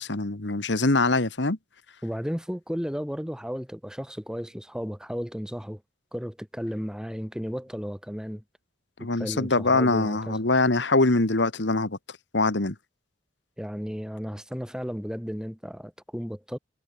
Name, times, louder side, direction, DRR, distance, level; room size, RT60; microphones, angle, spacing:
voice 1, 0.0-1.6 9.0-12.0 12.3-12.8, left 2 dB, 80° left, 1.8 m, -23 dB
voice 2, 2.0-5.8 6.1-8.4 9.0-10.4 13.6-16.6, equal, 5° right, 3.4 m, -34 dB
head